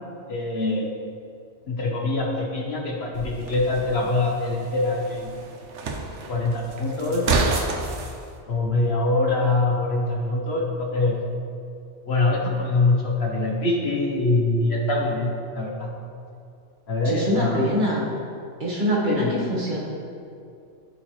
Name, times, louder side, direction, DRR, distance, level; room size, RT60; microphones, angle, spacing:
voice 1, 0.3-0.9 1.7-5.4 6.3-7.2 8.5-11.2 12.0-15.9 16.9-17.6 19.1-19.3, left 2 dB, 65° left, -1 dB, 1.2 m, -24 dB
sound 1, 3.1-8.1, right 3 dB, 80° right, 1.1 m, -29 dB
voice 2, 17.0-18.1 18.6-19.8, equal, 45° right, -4 dB, 1.4 m, -24 dB
12.0 x 4.3 x 3.1 m, 2.5 s
omnidirectional pair, 1.2 m